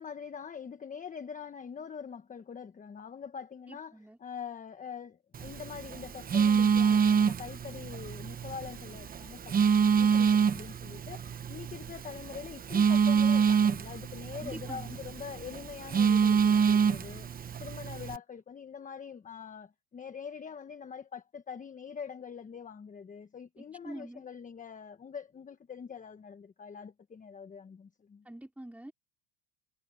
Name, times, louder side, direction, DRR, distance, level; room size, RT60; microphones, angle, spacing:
voice 1, 0.0-17.3 17.6-28.2, left 7 dB, 15° left, 1.2 m, -44 dB
voice 2, 3.7-4.2 14.4-15.0 23.6-24.2 28.2-28.9, right 1 dB, 5° right, 4.3 m, -45 dB
Telephone, 5.3-18.2, right 6 dB, 20° right, 1.0 m, -27 dB
supercardioid pair, 125°, 47 cm